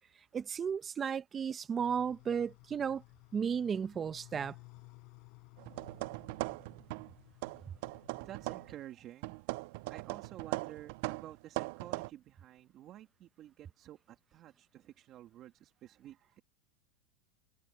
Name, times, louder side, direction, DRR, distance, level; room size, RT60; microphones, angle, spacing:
voice 1, 0.3-3.0 3.3-4.5, right 7 dB, 20° right, 1.0 m, -34 dB
sound 1, 1.8-8.7, left 29 dB, 55° left, 4.7 m, -58 dB
sound 2, 5.6-7.1 7.4-8.8 9.2-12.1, right 23 dB, 60° right, 0.4 m, -40 dB
voice 2, 7.8-9.6 9.9-16.4, right 13 dB, 35° right, 2.8 m, -51 dB
supercardioid pair, 140°, 0 cm